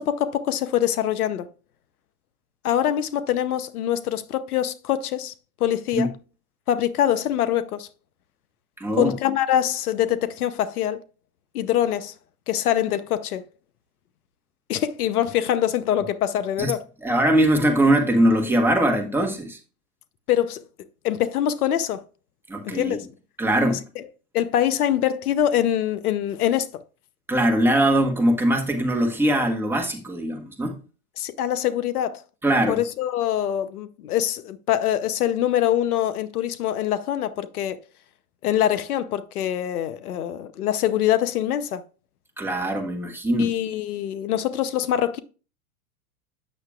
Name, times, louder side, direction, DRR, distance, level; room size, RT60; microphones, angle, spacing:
voice 1, 0.0-1.5 2.6-5.3 5.6-6.1 6.7-7.9 9.0-11.0 11.5-12.1 12.5-13.4 14.7-16.8 20.3-20.6 21.0-22.0 22.6-23.0 23.7-24.0 24.3-26.7 31.2-32.2 32.7-37.8 38.4-41.8 43.4-45.2, left 11 dB, 85° left, 0.8 m, -24 dB
voice 2, 8.8-9.1 16.6-16.7 17.0-19.6 22.5-23.0 23.4-23.8 27.3-30.8 32.4-32.8 42.4-43.5, right 1 dB, 5° right, 1.4 m, -21 dB
8.7 x 6.6 x 2.4 m
hypercardioid pair, 110°, 44 cm